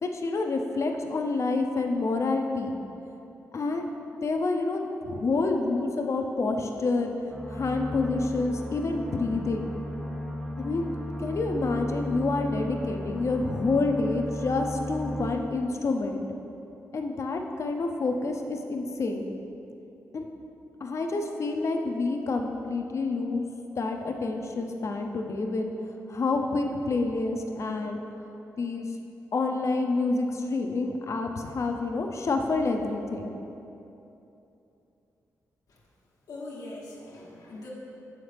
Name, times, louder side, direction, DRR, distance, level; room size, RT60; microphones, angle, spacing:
voice 1, 0.0-2.7 3.5-3.9 4.2-7.1 7.5-9.7 10.6-10.9 11.2-16.2 16.9-19.3 20.1-20.3 20.8-23.5 23.8-25.7 26.1-28.0 28.6-28.9 29.3-33.3, left 3 dB, 50° left, 3 dB, 0.6 m, -28 dB
sound 1, 7.3-15.3, left 1 dB, ahead, 0.8 m, -35 dB
voice 2, 36.3-37.7, left 2 dB, 90° left, -5 dB, 1.2 m, -41 dB
7.0 x 5.7 x 3.3 m, 2.9 s
cardioid pair, 80°, 6 cm